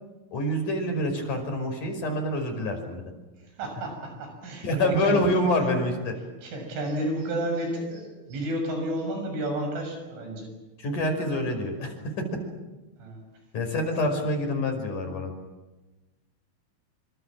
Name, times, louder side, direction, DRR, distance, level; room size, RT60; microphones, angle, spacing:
voice 1, 0.3-3.0 4.6-6.1 10.8-12.4 13.5-15.3, left 1 dB, 45° left, 4 dB, 6.7 m, -26 dB
voice 2, 3.4-5.4 5.8-5.9 6.4-10.6 13.0-13.2, right 1 dB, 90° right, 4 dB, 9.1 m, -31 dB
27.5 x 26.0 x 7.6 m, 1.1 s
omnidirectional pair, 5.3 m